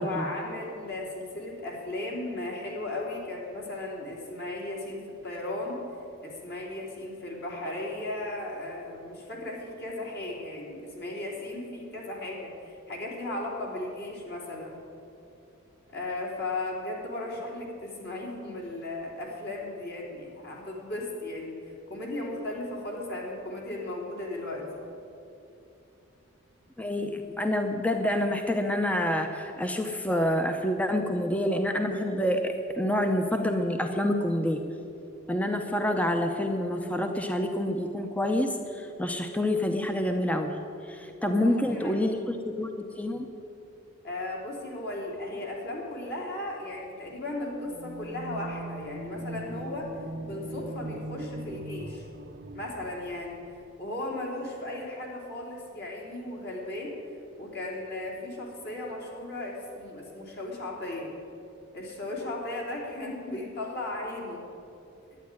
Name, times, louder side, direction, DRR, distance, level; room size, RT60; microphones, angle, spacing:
voice 1, 0.0-5.8 6.2-14.8 15.9-21.6 21.9-24.8 41.2-41.9 44.0-52.1 52.5-53.4 53.8-57.0 57.4-61.1 61.7-64.5, left 2 dB, 50° left, -2 dB, 3.0 m, -36 dB
voice 2, 26.8-34.6 35.3-40.6 40.8-43.3, left 1 dB, 5° left, 5 dB, 0.7 m, -27 dB
sound 1, 47.6-53.6, right 1 dB, 50° right, 0.7 m, -40 dB
12.0 x 9.5 x 9.7 m, 2.7 s
head